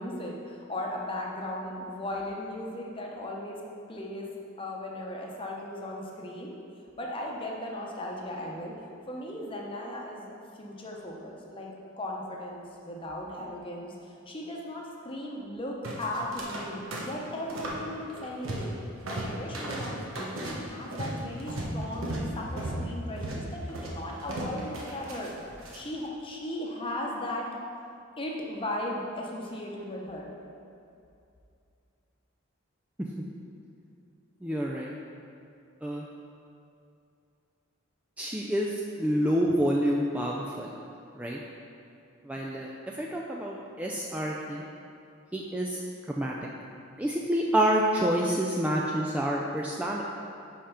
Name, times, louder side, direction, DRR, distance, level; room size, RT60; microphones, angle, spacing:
voice 1, 0.0-3.6 3.9-4.3 4.6-6.6 7.0-8.7 9.1-10.3 10.6-11.7 12.0-18.7 19.0-25.3 25.7-27.5 27.8-27.9 28.2-30.3, left 1 dB, 25° left, -1 dB, 0.8 m, -37 dB
sound 1, 15.8-16.6 16.9-17.8 18.1-18.8 19.1-25.8, right 1 dB, 90° right, 1.1 m, -35 dB
voice 2, 34.4-34.9 35.8-36.0 38.2-40.7 41.2-41.4 42.2-44.6 45.3-45.8 46.1-46.3 47.0-50.0, equal, 5° right, -3 dB, 0.3 m, -28 dB
5.5 x 5.0 x 5.7 m, 2.6 s
head